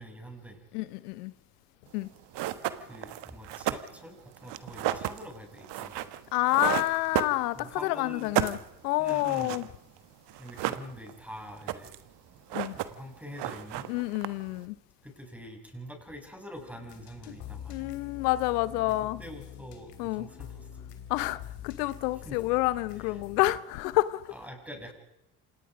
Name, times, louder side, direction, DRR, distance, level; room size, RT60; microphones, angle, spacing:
voice 1, 0.0-0.6 2.8-6.1 7.5-8.4 9.0-9.6 10.4-11.9 12.7-13.9 15.0-17.9 18.8-18.9 19.2-20.9 22.2-22.4 23.1-23.2 24.3-24.9, equal, 5° right, 7.2 m, -45 dB
voice 2, 0.7-1.3 1.9-2.1 6.3-8.6 8.8-9.7 12.5-12.8 13.9-14.8 17.3-17.4 17.7-19.2 20.0-20.3 21.1-24.3, left 18 dB, 85° left, 0.9 m, -28 dB
sound 1, 2.0-2.1 2.3-7.8 8.1-9.7 10.0-10.1 10.3-11.2 11.5-12.1 12.4-13.1 13.4-14.6, right 13 dB, 65° right, 1.4 m, -33 dB
sound 2, 16.6-23.6, left 10 dB, 60° left, 3.4 m, -45 dB
27.0 x 19.5 x 5.2 m
hypercardioid pair, 65°, 45 cm